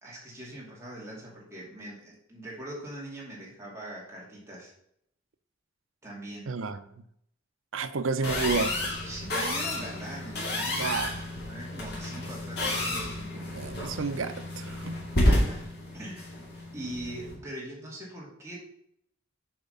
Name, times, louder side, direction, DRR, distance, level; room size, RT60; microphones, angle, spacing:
voice 1, 0.0-4.7 6.0-6.5 8.6-8.7 9.0-10.9 11.5-13.5 15.3-16.3 16.7-18.6, right 1 dB, 15° right, 2.4 m, -41 dB
voice 2, 6.5-7.0 7.7-8.9 10.8-11.2 13.3-15.0, right 4 dB, 85° right, 0.6 m, -31 dB
sound 1, 8.2-17.3, left 1 dB, 50° left, 2.5 m, -30 dB
7.3 x 4.9 x 5.5 m
head